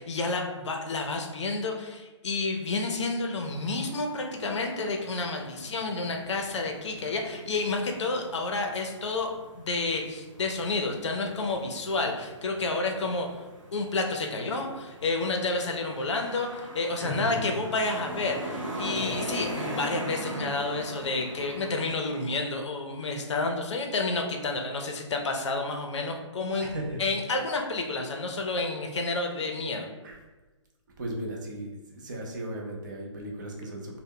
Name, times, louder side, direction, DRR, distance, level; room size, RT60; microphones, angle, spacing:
voice 1, 0.0-9.3 9.6-13.3 13.7-26.7 27.0-29.9, left 3 dB, 65° left, 3 dB, 0.5 m, -30 dB
sound 1, 3.4-22.0, equal, 85° right, 0.7 m, -41 dB
voice 2, 16.9-17.8 26.5-27.6 29.1-29.3 30.0-30.2 31.0-34.0, right 1 dB, 40° right, 0 dB, 0.5 m, -37 dB
2.1 x 2.0 x 3.6 m, 1.2 s
hypercardioid pair, 165°, 16 cm